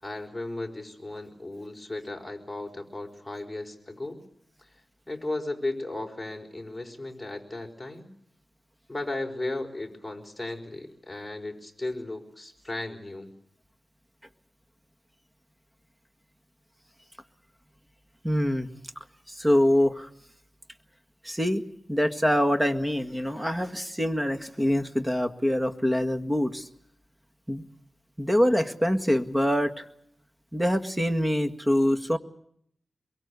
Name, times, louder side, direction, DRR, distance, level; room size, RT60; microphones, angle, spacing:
voice 1, 0.0-4.2 4.6-4.7 5.1-8.1 8.9-13.3, left 2 dB, 10° left, 2 dB, 4.8 m, -35 dB
voice 2, 18.2-18.7 19.3-20.1 21.2-21.6 21.9-26.7 27.5-27.6 28.2-29.9 30.5-32.2, equal, 10° right, 7 dB, 1.9 m, -25 dB
23.5 x 23.0 x 8.3 m, 0.70 s
wide cardioid pair, 85°, 0 cm